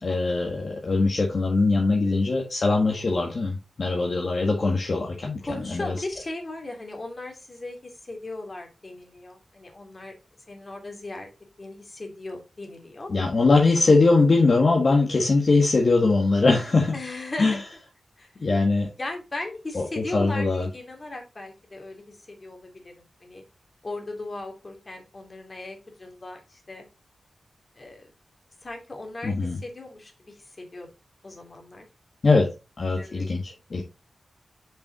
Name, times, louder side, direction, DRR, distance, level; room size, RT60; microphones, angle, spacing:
voice 1, 0.0-5.4 5.7-5.9 13.1-16.9 17.4-17.6 18.4-18.9 19.7-19.8 20.1-20.7 29.2-29.6 32.2-32.5 32.8-33.8, left 3 dB, 55° left, 1.6 m, -21 dB
voice 2, 1.9-2.2 5.4-10.1 10.5-11.3 11.6-13.1 14.9-15.2 16.9-17.6 18.2-18.3 19.0-23.4 23.8-26.8 27.8-28.1 28.6-30.9 31.2-31.9 32.9-33.2, left 2 dB, 35° left, 2.8 m, -38 dB
6.8 x 5.5 x 3.9 m
wide cardioid pair, 75°, 0 cm